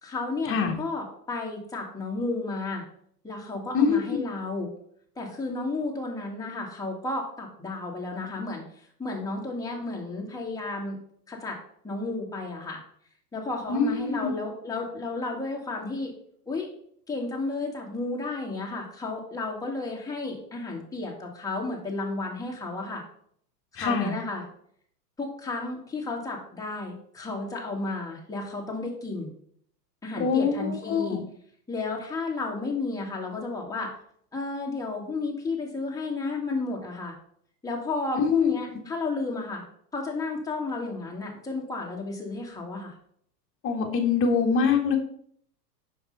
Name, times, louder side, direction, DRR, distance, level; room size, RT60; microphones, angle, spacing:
voice 1, 0.0-2.8 3.2-4.7 5.2-8.6 9.0-11.0 11.3-11.6 11.8-12.8 13.3-16.1 16.5-16.7 17.1-23.0 23.7-24.4 25.2-29.3 30.0-31.2 31.7-33.9 34.3-37.1 37.6-39.7 39.9-42.9, left 3 dB, 5° left, -2 dB, 2.0 m, -32 dB
voice 2, 13.7-14.3 23.8-24.1 30.2-31.2 38.1-38.5 43.6-45.0, left 5 dB, 25° left, 2 dB, 1.6 m, -24 dB
5.8 x 5.5 x 5.5 m, 0.64 s
hypercardioid pair, 125°, 50 cm